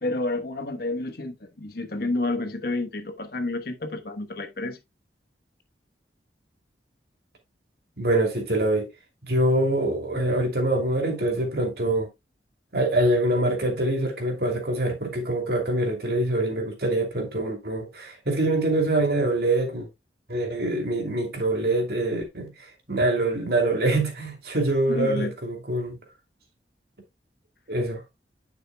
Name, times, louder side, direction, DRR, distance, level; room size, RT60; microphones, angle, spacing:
voice 1, 0.0-4.8 24.9-25.3, left 2 dB, 60° left, 1.1 m, -30 dB
voice 2, 8.0-8.9 9.2-12.1 12.7-19.9 20.3-22.5 22.9-26.0 27.7-28.0, right 1 dB, 60° right, 2.7 m, -24 dB
10.0 x 6.6 x 2.2 m
head